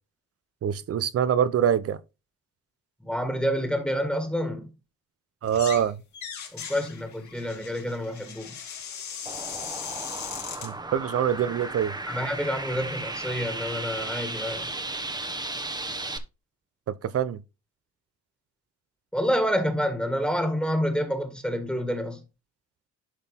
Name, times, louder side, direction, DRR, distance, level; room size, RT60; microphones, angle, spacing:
voice 1, 0.6-2.0 5.4-6.0 10.6-11.9 16.9-17.4, right 9 dB, 50° right, 0.7 m, -25 dB
voice 2, 3.0-4.7 6.5-8.6 12.1-14.7 19.1-22.2, equal, 5° left, 1.8 m, -28 dB
sound 1, 5.4-5.9 6.1-10.7, left 7 dB, 70° left, 2.7 m, -38 dB
sound 2, 9.3-16.2, right 2 dB, 15° right, 1.0 m, -35 dB
11.0 x 3.9 x 3.6 m
cardioid pair, 90°, 30 cm